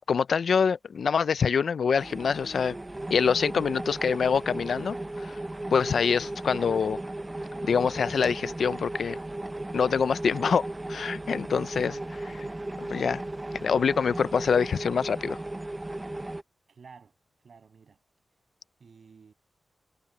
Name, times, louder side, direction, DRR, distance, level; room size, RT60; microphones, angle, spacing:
voice 1, 0.1-2.7 3.1-5.3 5.7-7.0 7.6-9.2 9.7-11.9 12.9-13.2 13.6-15.4, left 6 dB, 75° left, 0.5 m, -25 dB
sound 1, 2.0-16.4, right 1 dB, 15° right, 0.5 m, -36 dB
voice 2, 11.7-12.6 16.7-17.1 17.4-18.0 18.8-19.3, right 5 dB, 65° right, 8.0 m, -51 dB
wide cardioid pair, 130°, 0 cm